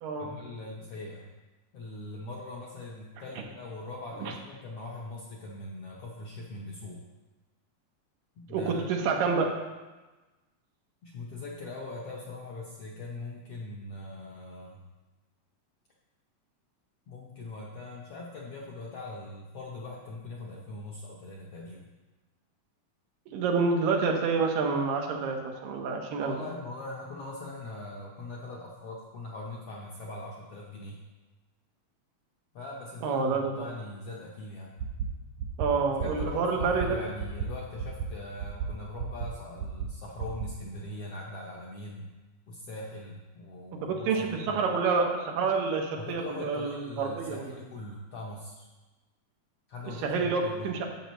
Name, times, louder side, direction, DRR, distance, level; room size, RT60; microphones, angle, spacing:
voice 1, 0.2-1.3 1.7-7.0 8.4-8.9 11.0-14.8 17.1-21.9 26.2-31.0 32.5-34.7 35.9-42.1 42.5-44.6 46.0-48.7 49.7-50.8, left 2 dB, 70° left, -4 dB, 1.4 m, -41 dB
voice 2, 8.5-9.5 23.3-26.4 33.0-33.6 35.6-37.0 43.8-47.4 50.0-50.8, right 4 dB, 90° right, 1 dB, 2.8 m, -28 dB
sound 1, 34.8-35.1 35.4-35.7 36.0-36.3 36.6-36.9 37.2-37.5 37.8-38.1 38.4-38.7 39.0-39.3 39.6-39.9 40.2-40.5, right 7 dB, 70° right, 2.4 m, -33 dB
11.5 x 7.5 x 3.1 m, 1.2 s
omnidirectional pair, 3.8 m